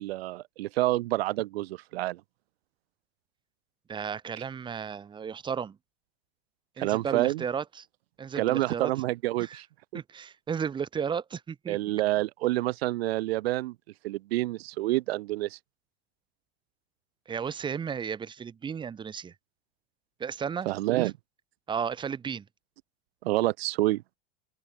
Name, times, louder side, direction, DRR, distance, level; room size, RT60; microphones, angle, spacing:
voice 1, 0.0-2.2 6.8-7.4 8.3-9.7 9.9-10.0 11.7-13.7 14.0-15.6 20.7-21.2 23.2-24.0, right 17 dB, 85° right, 2.5 m, -28 dB
voice 2, 3.9-5.8 6.8-7.8 8.2-8.9 9.4-9.6 9.9-11.8 17.3-19.3 20.2-20.7 21.7-22.4, right 7 dB, 15° right, 3.4 m, -34 dB
open air
supercardioid pair, 170°, 30 cm